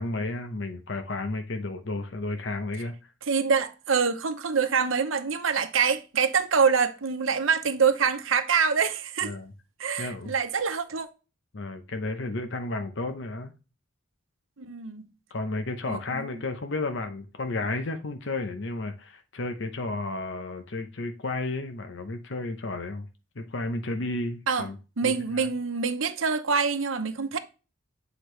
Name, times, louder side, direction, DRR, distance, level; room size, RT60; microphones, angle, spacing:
voice 1, 0.0-3.1 9.2-9.5 10.0-10.3 11.5-13.5 15.3-23.1 23.4-24.8 25.0-25.5, left 2 dB, 65° left, 0.8 m, -32 dB
voice 2, 3.3-9.3 9.8-11.1 14.6-15.1 15.9-16.4 24.5-24.7 25.0-27.4, right 5 dB, 85° right, 0.8 m, -25 dB
8.0 x 4.9 x 3.2 m
head